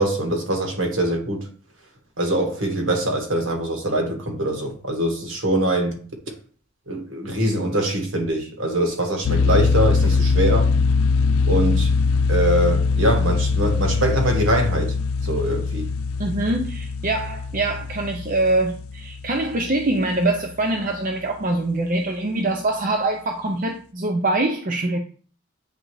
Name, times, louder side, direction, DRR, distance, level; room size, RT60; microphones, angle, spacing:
voice 1, 0.0-1.5 2.2-6.0 6.9-10.7 11.5-11.9 12.3-14.9 15.2-15.9, right 1 dB, 65° right, 1.4 m, -23 dB
sound 1, 9.2-20.1, left 4 dB, 80° left, 0.5 m, -22 dB
voice 2, 16.2-25.0, right 2 dB, 40° right, 0.5 m, -24 dB
8.9 x 3.8 x 3.1 m
head